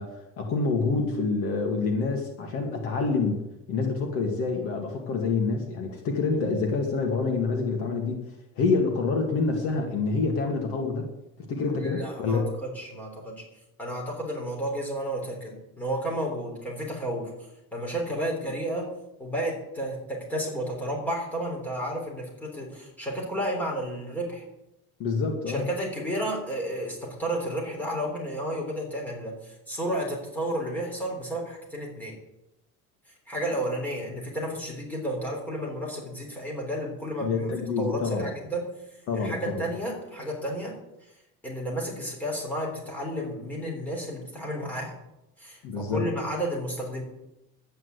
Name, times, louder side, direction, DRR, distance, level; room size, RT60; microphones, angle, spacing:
voice 1, 0.0-3.4 3.7-8.2 8.6-11.1 11.4-12.4 25.0-25.7 37.2-38.3 39.1-39.6 45.6-46.1, left 4 dB, 50° left, 2 dB, 2.1 m, -27 dB
voice 2, 11.7-13.4 13.8-17.3 17.7-18.9 19.2-24.4 25.5-32.2 33.3-37.5 37.8-38.7 39.1-40.8 41.4-44.9 45.4-47.0, right 1 dB, 5° left, -2 dB, 3.6 m, -32 dB
11.0 x 9.1 x 8.2 m, 0.88 s
cardioid pair, 180°, 29 cm